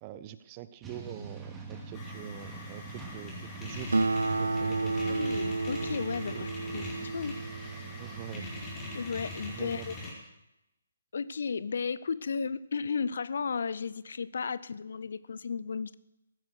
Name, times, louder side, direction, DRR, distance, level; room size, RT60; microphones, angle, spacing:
voice 1, 0.0-4.0 4.4-5.2 6.3-6.9 8.0-8.5 9.5-9.9, right 12 dB, 25° right, 14 dB, 0.7 m, -45 dB
sound 1, 0.8-10.1, right 4 dB, 10° right, 2.4 m, -44 dB
sound 2, 1.9-10.1, left 2 dB, 20° left, 4.8 m, -43 dB
Acoustic guitar, 3.9-8.8, right 3 dB, 75° right, 0.4 m, -32 dB
voice 2, 5.1-7.4 8.9-9.9 11.1-15.9, left 5 dB, 60° left, 18 dB, 0.5 m, -34 dB
15.5 x 11.5 x 6.4 m, 0.91 s
figure-of-eight pair, 140°, 0 cm